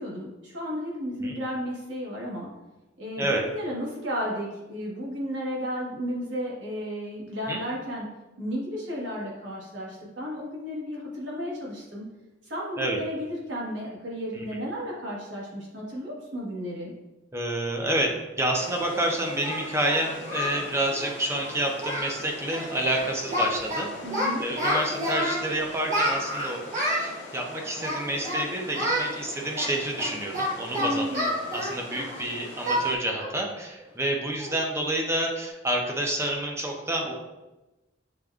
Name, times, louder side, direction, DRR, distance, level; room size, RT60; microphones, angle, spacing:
voice 1, 0.0-2.5 3.0-8.1 8.4-12.1 12.5-16.9 24.0-24.4 30.8-31.3, equal, 80° right, -4 dB, 1.2 m, -33 dB
voice 2, 17.3-23.9 24.4-26.7 27.3-31.2 31.5-37.1, right 1 dB, 15° right, 0 dB, 0.5 m, -28 dB
sound 1, 18.5-33.0, left 1 dB, 70° left, 0.9 m, -42 dB
Singing, 18.6-18.7 19.4-20.6 20.9-21.1 21.4-21.5 21.8-22.2 22.4-22.7 22.9-23.8 24.1-25.4 25.9-27.1 27.8-28.4 28.7-29.1 29.5-32.2 32.7-32.9 33.2-33.4 33.8-33.9 34.4-34.7, equal, 45° right, 1.2 m, -28 dB
6.3 x 2.3 x 2.3 m, 1.1 s
head